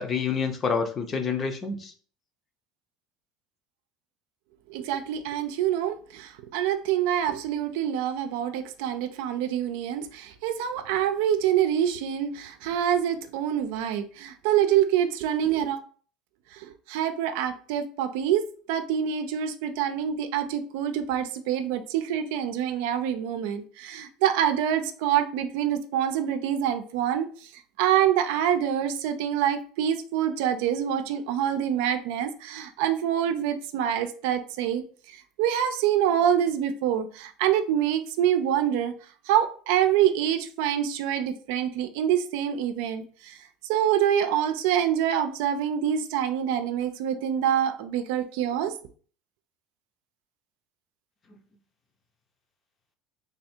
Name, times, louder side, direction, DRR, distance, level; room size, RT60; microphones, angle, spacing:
voice 1, 0.0-1.9 51.3-51.4, left 5 dB, 30° left, 0.7 m, -28 dB
voice 2, 4.7-15.8 16.5-27.5 27.8-34.8 35.1-38.9 39.3-43.4 43.6-48.8, right 10 dB, 75° right, 0.5 m, -26 dB
3.4 x 2.4 x 4.3 m
supercardioid pair, 135°, 0 cm